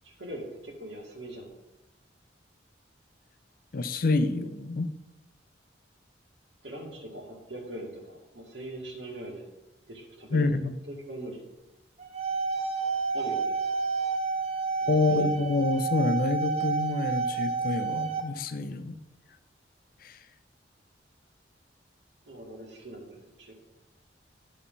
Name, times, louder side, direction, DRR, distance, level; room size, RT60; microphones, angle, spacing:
voice 1, 0.0-1.5 6.6-9.5 9.9-10.5 10.9-11.4 13.1-13.5 14.8-15.3 22.3-23.5, right 1 dB, 80° right, -1 dB, 2.3 m, -41 dB
voice 2, 3.7-4.9 10.3-10.7 14.9-19.0 20.0-20.1, left 3 dB, 50° left, 11 dB, 0.5 m, -27 dB
sound 1, 12.0-18.2, right 4 dB, 35° right, 0.8 m, -30 dB
11.0 x 6.0 x 3.9 m, 0.98 s
head